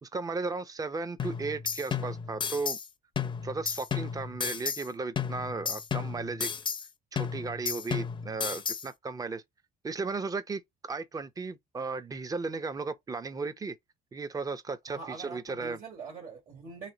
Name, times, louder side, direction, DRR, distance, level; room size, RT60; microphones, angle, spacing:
voice 1, 0.0-2.8 3.4-6.5 7.1-9.4 9.8-13.8 14.1-15.8, right 4 dB, 20° right, 0.6 m, -35 dB
sound 1, 1.2-2.9 3.2-4.9 5.2-6.9 7.2-8.9, left 7 dB, 30° left, 0.5 m, -33 dB
voice 2, 14.9-16.9, right 4 dB, 50° right, 1.7 m, -43 dB
3.2 x 3.1 x 3.8 m
cardioid pair, 110°, 17 cm